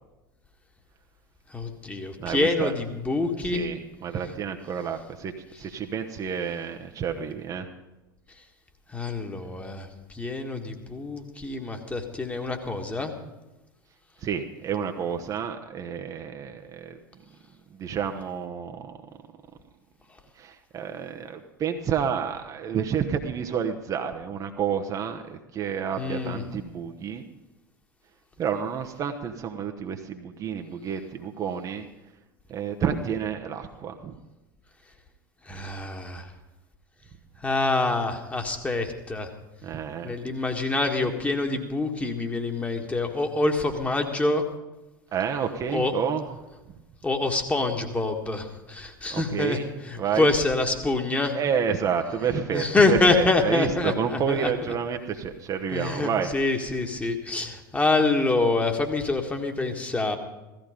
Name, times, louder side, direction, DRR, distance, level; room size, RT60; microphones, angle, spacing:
voice 1, 1.5-3.7 8.9-9.9 10.1-13.1 26.0-26.4 35.5-36.3 37.4-39.3 40.0-44.4 45.7-45.9 47.0-49.6 49.9-51.4 52.5-54.5 55.7-60.2, left 3 dB, 10° left, 4 dB, 1.8 m, -26 dB
voice 2, 2.2-2.7 3.5-5.3 5.6-7.7 14.2-17.0 17.7-19.0 20.4-27.2 28.4-31.9 32.5-34.2 39.6-40.2 45.1-46.2 49.1-50.4 51.3-56.3, right 7 dB, 30° right, 5 dB, 1.0 m, -30 dB
16.0 x 14.0 x 5.2 m, 1.0 s
figure-of-eight pair, 80°, 11 cm